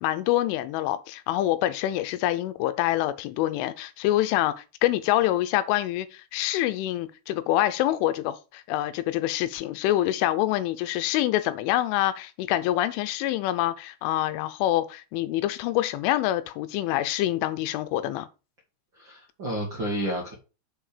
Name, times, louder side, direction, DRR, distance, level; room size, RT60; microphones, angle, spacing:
voice 1, 0.0-18.3, left 14 dB, 85° left, 3.1 m, -26 dB
voice 2, 18.9-20.3, right 1 dB, 60° right, 1.2 m, -31 dB
7.2 x 5.7 x 5.0 m
omnidirectional pair, 5.6 m